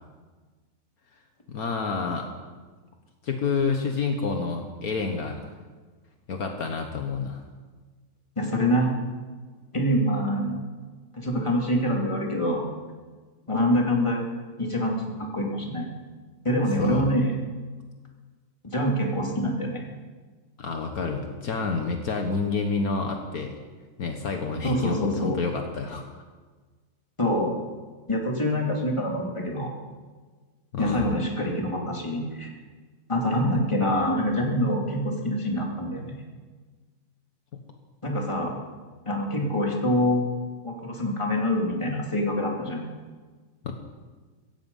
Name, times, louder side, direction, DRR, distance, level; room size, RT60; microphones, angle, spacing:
voice 1, 1.5-2.3 3.2-5.5 6.3-7.4 16.8-17.0 20.6-23.5 24.0-26.0 30.7-31.2 43.6-43.7, left 4 dB, 65° left, 4 dB, 1.7 m, -28 dB
voice 2, 8.4-8.9 9.7-10.6 11.1-12.7 13.5-14.2 14.6-15.9 16.4-17.4 18.6-19.8 24.6-25.4 27.2-27.6 28.1-29.7 30.8-32.5 33.1-36.1 38.0-38.5 39.1-42.8, equal, 20° left, -1 dB, 2.8 m, -25 dB
16.5 x 15.5 x 5.5 m, 1.4 s
omnidirectional pair, 1.7 m